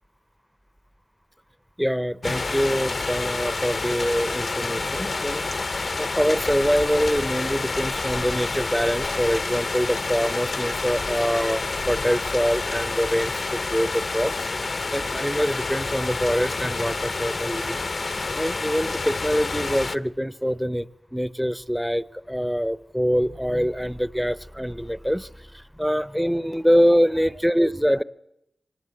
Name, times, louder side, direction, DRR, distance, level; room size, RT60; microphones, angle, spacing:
voice 1, 1.8-5.4 6.0-14.5 14.9-28.0, equal, ahead, 16 dB, 0.8 m, -24 dB
sound 1, 2.2-20.0, left 3 dB, 55° left, 0.8 m, -28 dB
24.5 x 19.5 x 7.8 m, 0.83 s
cardioid pair, 50°, 0 cm